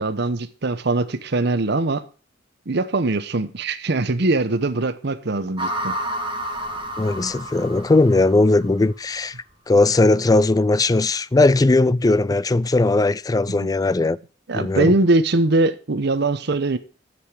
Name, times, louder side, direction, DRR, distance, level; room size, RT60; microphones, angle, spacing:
voice 1, 0.0-2.0 2.7-5.9 13.5-13.7 14.5-16.8, right 2 dB, 65° right, 0.9 m, -22 dB
sound 1, 5.6-8.9, right 1 dB, 25° right, 1.7 m, -30 dB
voice 2, 7.0-9.4 9.7-14.2 14.5-15.0, left 2 dB, 20° left, 0.4 m, -18 dB
10.0 x 7.9 x 4.8 m
head